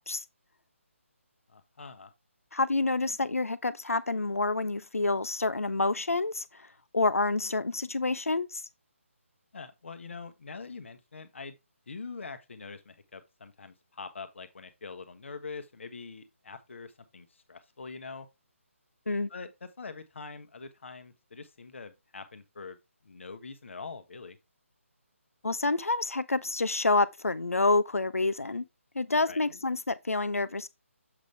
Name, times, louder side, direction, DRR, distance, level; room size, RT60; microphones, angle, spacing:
voice 1, 1.5-2.1 9.5-11.5 11.9-18.3 19.3-22.8 23.0-24.4 29.3-29.4, left 4 dB, 60° left, 1.2 m, -44 dB
voice 2, 2.5-6.7 6.9-8.6 19.1-19.3 25.4-28.6 28.9-30.7, left 3 dB, 80° left, 0.7 m, -28 dB
7.4 x 5.2 x 3.3 m
figure-of-eight pair, 150°, 8 cm